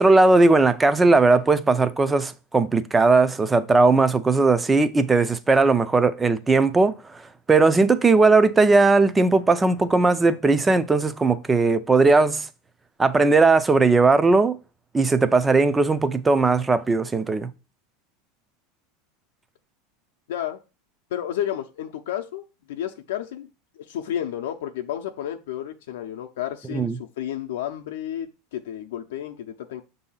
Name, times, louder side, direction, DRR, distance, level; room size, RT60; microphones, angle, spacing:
voice 1, 0.0-7.2 7.5-12.5 13.0-14.6 14.9-17.5 26.7-26.9, right 3 dB, 10° right, 0.4 m, -18 dB
voice 2, 20.3-20.6 21.1-23.5 23.8-29.8, left 11 dB, 85° left, 0.5 m, -31 dB
6.4 x 2.7 x 5.5 m
supercardioid pair, 150°, 0 cm